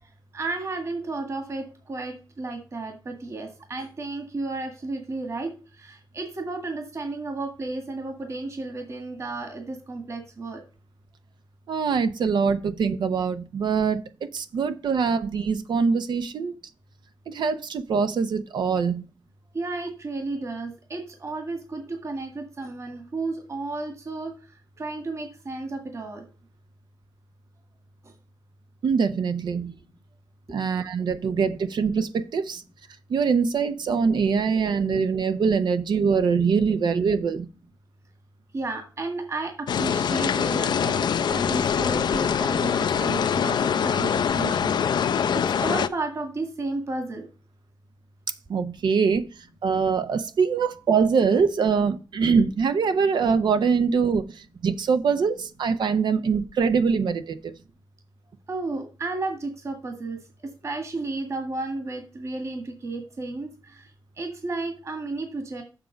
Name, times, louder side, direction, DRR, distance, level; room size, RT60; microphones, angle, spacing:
voice 1, 0.0-10.6 19.5-26.3 28.0-28.1 30.5-30.6 38.5-47.3 58.5-60.2 60.6-65.6, right 3 dB, 40° right, 1.8 m, -33 dB
voice 2, 11.7-16.5 17.3-19.0 28.8-29.7 30.5-32.6 33.1-37.5 48.5-57.5, right 5 dB, 85° right, 0.7 m, -23 dB
sound 1, 39.7-45.9, left 7 dB, 75° left, 0.5 m, -24 dB
7.5 x 6.2 x 5.1 m
wide cardioid pair, 170°, 7 cm